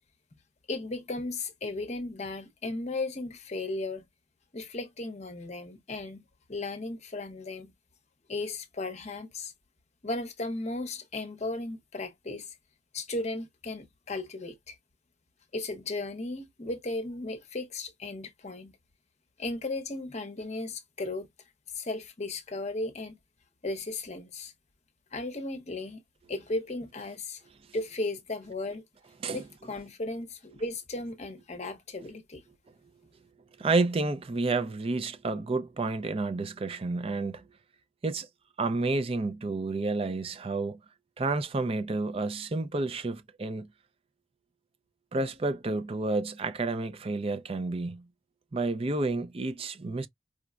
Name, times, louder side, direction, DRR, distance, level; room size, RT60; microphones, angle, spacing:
voice 1, 0.7-4.1 4.5-7.7 8.3-9.5 10.0-12.6 12.9-14.8 15.5-18.8 19.4-21.3 21.7-23.2 23.6-24.5 25.1-26.0 26.3-27.4 27.7-28.8 29.3-32.4, left 2 dB, 35° left, 0.7 m, -35 dB
voice 2, 33.6-37.4 38.0-38.3 38.6-40.8 41.2-43.7 45.1-48.0 48.5-50.1, right 3 dB, 30° right, 0.4 m, -30 dB
4.9 x 2.1 x 2.3 m
head